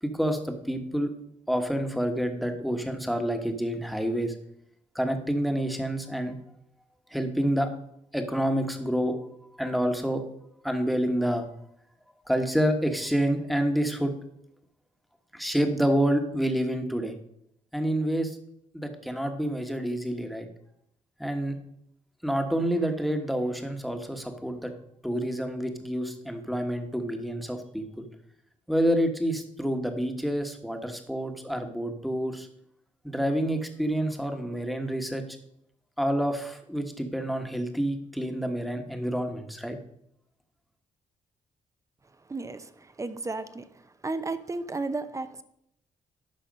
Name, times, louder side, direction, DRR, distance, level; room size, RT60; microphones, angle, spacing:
voice 1, 0.0-1.1 1.5-4.3 4.9-6.3 7.1-7.7 8.1-9.2 9.6-10.2 10.6-11.4 12.3-14.1 15.3-17.1 17.7-18.4 18.7-20.5 21.2-21.6 22.2-24.7 25.0-28.0 28.7-32.5 33.0-35.2 36.0-39.8, equal, ahead, 5 dB, 1.3 m, -28 dB
voice 2, 42.3-43.7 44.0-45.4, right 3 dB, 25° right, 11 dB, 0.7 m, -33 dB
11.5 x 4.2 x 5.2 m, 0.76 s
cardioid pair, 85°, 14 cm